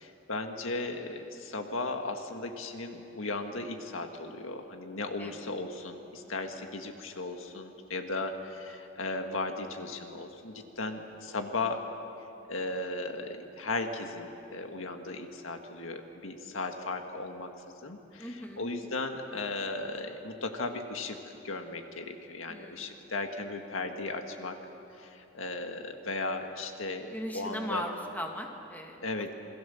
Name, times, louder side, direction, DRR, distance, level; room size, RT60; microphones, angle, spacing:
voice 1, 0.0-11.9 12.5-17.5 17.8-18.3 18.6-24.6 25.0-27.8 29.0-29.3, left 2 dB, 85° left, 5 dB, 1.9 m, -36 dB
voice 2, 5.2-5.5 18.2-18.7 22.5-23.0 27.1-29.3, equal, 10° left, 2 dB, 1.9 m, -38 dB
27.5 x 22.0 x 7.2 m, 2.9 s
head